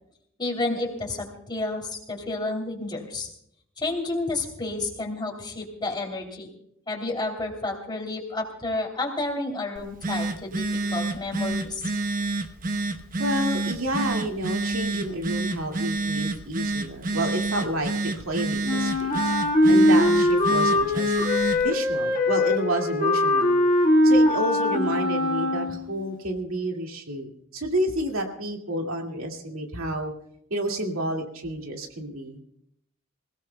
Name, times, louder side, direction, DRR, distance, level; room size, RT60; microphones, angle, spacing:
voice 1, 0.4-3.3 3.8-6.5 6.9-10.7 10.9-11.9, left 2 dB, 20° left, 1 dB, 3.0 m, -30 dB
Telephone, 9.7-21.7, right 2 dB, 40° right, 0.9 m, -29 dB
voice 2, 13.2-19.3 19.7-21.1 21.6-23.6 24.0-30.1 30.5-32.4, right 1 dB, 85° right, 2 dB, 2.3 m, -30 dB
Wind instrument woodwind instrument, 18.6-26.0, left 1 dB, 40° left, 1.7 m, -21 dB
26.5 x 17.0 x 2.3 m, 0.72 s
head